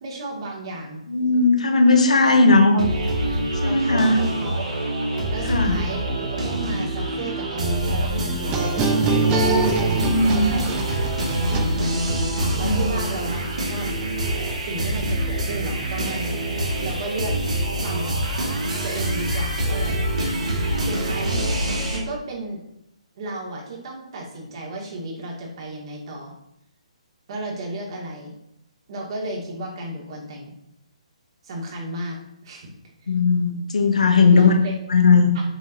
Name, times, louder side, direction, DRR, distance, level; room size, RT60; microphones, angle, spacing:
voice 1, 0.0-1.0 1.9-2.8 3.2-4.7 5.3-6.0 6.3-11.6 12.4-13.9 14.6-17.4 17.8-18.2 18.8-20.0 20.8-21.5 21.9-22.6 23.2-26.3 27.3-28.3 28.9-30.5 31.4-32.7 33.0-33.1 34.3-34.7 35.3-35.4, right 2 dB, 50° right, -1 dB, 2.2 m, -33 dB
voice 2, 1.1-2.8 3.6-4.2 5.5-5.8 10.0-10.6 12.6-12.8 33.1-34.5 34.9-35.3, left 3 dB, 75° left, 4 dB, 1.2 m, -17 dB
sound 1, 2.8-22.0, right 1 dB, 75° right, 1.9 m, -25 dB
sound 2, 8.5-12.2, right 3 dB, 20° right, 0.9 m, -24 dB
7.1 x 5.6 x 2.7 m, 0.80 s
figure-of-eight pair, 140°, 4 cm